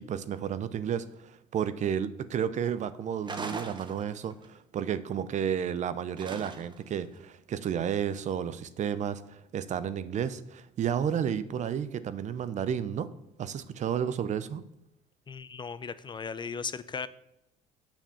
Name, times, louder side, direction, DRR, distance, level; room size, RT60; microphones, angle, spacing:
voice 1, 0.0-13.1 13.4-14.6, right 8 dB, 50° right, 14 dB, 0.7 m, -32 dB
sound 1, 3.2-4.5 6.2-6.9, right 3 dB, 30° right, 1.1 m, -40 dB
voice 2, 15.3-17.1, left 5 dB, 30° left, 15 dB, 0.5 m, -37 dB
7.1 x 5.7 x 7.1 m, 0.84 s
supercardioid pair, 90°, 16 cm